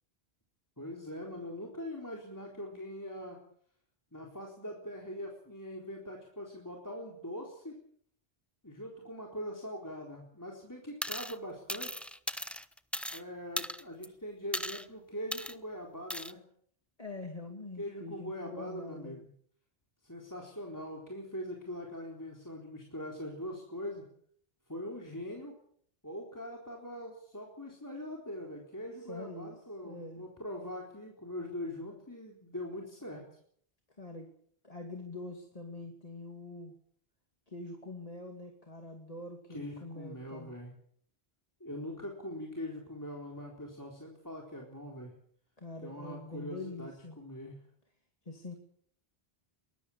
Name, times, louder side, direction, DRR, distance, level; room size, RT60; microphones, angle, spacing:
voice 1, 0.8-3.4 4.1-7.8 8.6-12.0 13.1-16.4 17.8-19.3 20.0-24.1 24.7-25.6 26.0-33.2 39.5-40.7 41.6-45.1 45.8-47.6, left 1 dB, 15° left, -1 dB, 4.1 m, -42 dB
sound 1, 11.0-11.4 11.7-13.2 13.6-14.1 14.5-14.8 15.3-15.5 16.1-16.3, equal, ahead, 0.8 m, -37 dB
voice 2, 17.0-19.2 20.4-20.5 29.0-29.5 29.8-30.3 34.0-34.3 34.6-36.7 37.5-40.5 45.6-47.2 48.3-48.6, left 2 dB, 35° left, 3 dB, 2.7 m, -44 dB
23.5 x 20.5 x 7.3 m, 0.64 s
omnidirectional pair, 1.1 m